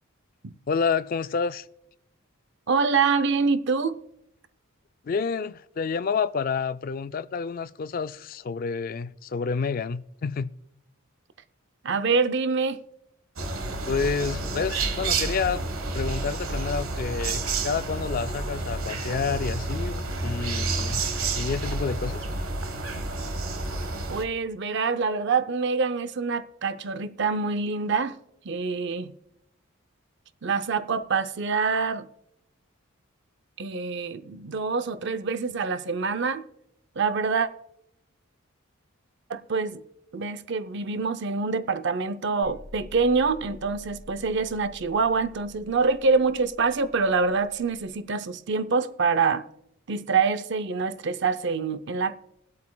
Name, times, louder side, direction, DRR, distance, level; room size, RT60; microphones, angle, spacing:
voice 1, 0.7-1.7 5.0-10.5 13.9-15.6 15.9-21.0 21.3-22.3, left 5 dB, 40° left, 0.3 m, -29 dB
voice 2, 2.7-4.0 11.8-12.8 24.1-28.2 28.4-29.1 30.4-32.1 33.6-36.4 37.0-37.5 39.3-39.8 40.1-49.4 49.9-52.2, right 4 dB, 55° right, 0.5 m, -25 dB
sound 1, 13.4-24.2, right 3 dB, 75° right, 1.2 m, -30 dB
sound 2, 42.4-48.0, left 2 dB, 5° right, 3.2 m, -48 dB
22.5 x 8.4 x 2.3 m
head